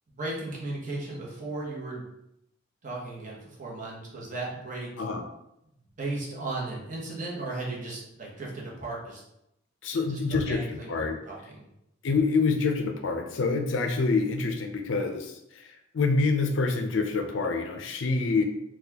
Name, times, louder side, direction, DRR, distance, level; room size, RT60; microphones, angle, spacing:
voice 1, 0.1-2.1 2.8-4.9 6.0-9.2 10.3-11.7, right 2 dB, 40° right, -3 dB, 0.9 m, -36 dB
voice 2, 9.8-11.2 12.0-18.4, left 4 dB, 70° left, 5 dB, 0.5 m, -27 dB
4.1 x 2.3 x 2.8 m, 0.83 s
head